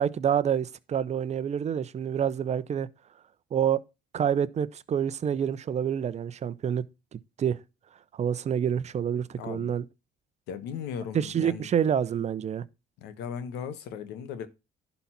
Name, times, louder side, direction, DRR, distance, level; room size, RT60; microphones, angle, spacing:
voice 1, 0.0-2.9 3.5-3.8 4.1-6.9 7.1-7.6 8.1-9.8 11.1-12.6, right 8 dB, 40° right, 0.8 m, -27 dB
voice 2, 9.4-9.8 10.5-11.7 13.0-14.5, left 7 dB, 85° left, 1.4 m, -37 dB
11.5 x 4.1 x 5.9 m
cardioid pair, 110°, 17 cm